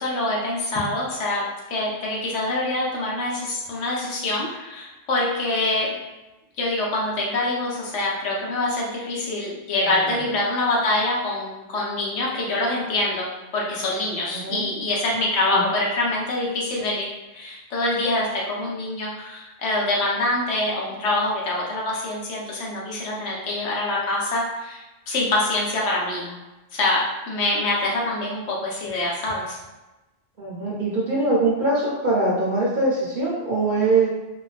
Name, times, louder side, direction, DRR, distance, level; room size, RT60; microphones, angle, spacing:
voice 1, 0.0-1.4 1.7-6.0 6.6-13.3 13.5-26.3 26.7-29.6, left 2 dB, 80° left, -4 dB, 1.0 m, -25 dB
voice 2, 9.8-10.1 14.4-14.6 15.5-15.6 30.4-34.1, right 2 dB, 55° right, -6 dB, 0.6 m, -22 dB
2.4 x 2.2 x 2.4 m, 1.0 s
omnidirectional pair, 1.2 m